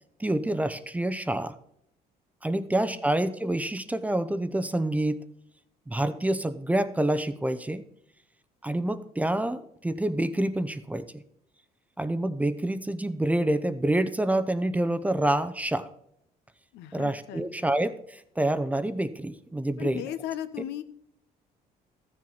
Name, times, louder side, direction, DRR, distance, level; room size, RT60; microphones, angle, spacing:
voice 1, 0.2-1.5 2.4-5.2 5.9-7.8 8.6-11.2 12.0-15.9 16.9-20.0, right 1 dB, 10° right, 13 dB, 0.6 m, -27 dB
voice 2, 16.7-17.4 19.8-20.8, left 11 dB, 85° left, 12 dB, 0.8 m, -36 dB
13.5 x 7.6 x 4.0 m, 0.76 s
cardioid pair, 110°, 17 cm